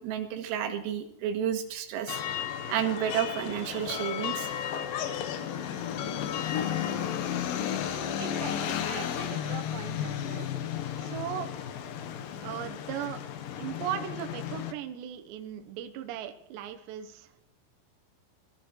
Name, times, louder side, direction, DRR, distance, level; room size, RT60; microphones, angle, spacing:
voice 1, 0.0-2.2 2.7-4.5, right 9 dB, 90° right, 6 dB, 4.5 m, -31 dB
sound 1, 2.1-14.7, left 9 dB, 80° left, 1.9 m, -33 dB
voice 2, 8.2-10.5 11.0-11.5 12.4-13.2 13.6-17.3, right 10 dB, 70° right, 7 dB, 3.1 m, -38 dB
21.5 x 14.0 x 4.7 m, 0.71 s
omnidirectional pair, 5.9 m